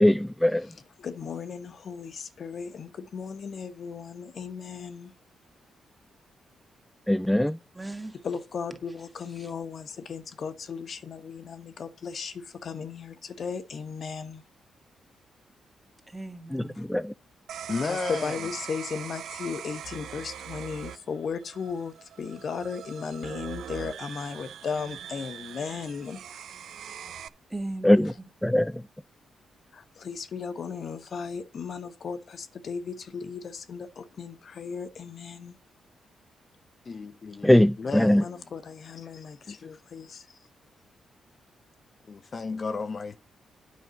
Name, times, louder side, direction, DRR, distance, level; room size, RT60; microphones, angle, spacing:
voice 1, 0.0-0.7 7.1-7.6 16.5-17.1 27.8-28.1 28.4-28.8 37.4-38.2, left 1 dB, 5° left, 0.4 m, -21 dB
voice 2, 0.6-5.1 8.2-14.4 16.8-16.9 17.9-26.7 29.7-35.5 38.2-40.3, left 6 dB, 60° left, 1.2 m, -36 dB
voice 3, 7.7-8.2 9.4-9.5 16.1-16.8 27.5-28.1 37.9-38.1, right 2 dB, 15° right, 1.9 m, -37 dB
sound 1, 17.5-27.3, right 9 dB, 80° right, 0.5 m, -41 dB
voice 4, 17.7-18.4 36.9-38.5 39.5-40.4 42.1-43.2, left 4 dB, 45° left, 0.7 m, -34 dB
9.6 x 5.3 x 6.9 m
cardioid pair, 70°, 0 cm